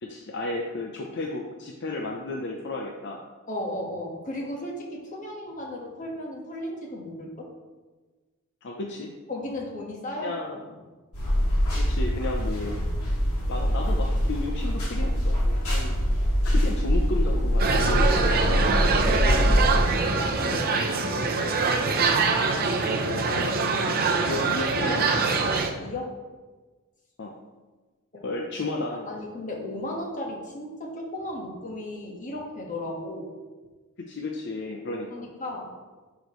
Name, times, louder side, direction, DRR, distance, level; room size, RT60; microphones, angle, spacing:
voice 1, 0.0-3.2 8.6-9.1 10.2-10.6 11.7-12.8 13.5-16.0 16.4-18.2 20.4-20.7 23.1-23.5 23.9-24.0 24.3-25.4 27.2-27.3 28.2-29.2 34.0-35.2, left 2 dB, 55° left, 1 dB, 0.7 m, -33 dB
voice 2, 3.5-7.5 9.3-10.3 10.7-10.8 18.8-20.2 20.9-21.3 22.5-22.9 25.8-26.1 28.1-28.3 29.0-33.3 35.1-35.7, left 1 dB, 35° left, -1 dB, 1.5 m, -35 dB
sound 1, 11.1-19.8, equal, 85° left, 2.6 m, -24 dB
sound 2, 17.6-25.7, right 4 dB, 45° right, 0.7 m, -24 dB
10.5 x 5.1 x 3.1 m, 1.3 s
head